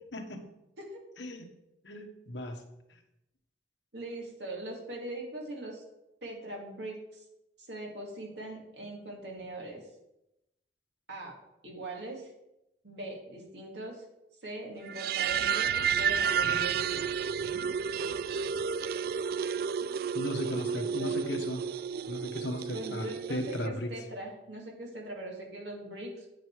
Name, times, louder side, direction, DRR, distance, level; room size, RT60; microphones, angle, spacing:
voice 1, 0.1-0.4 1.2-1.5 1.8-2.6 20.1-21.6 22.1-23.9, left 1 dB, 85° left, 3 dB, 1.4 m, -36 dB
voice 2, 3.9-5.8 6.2-7.2 7.7-9.8 11.1-12.3 12.8-14.0 14.4-17.0 20.5-21.4 22.7-26.3, right 1 dB, 75° right, -1 dB, 2.5 m, -41 dB
sound 1, 14.9-23.7, right 7 dB, 55° right, 0.3 m, -31 dB
9.0 x 6.7 x 4.8 m, 0.89 s
head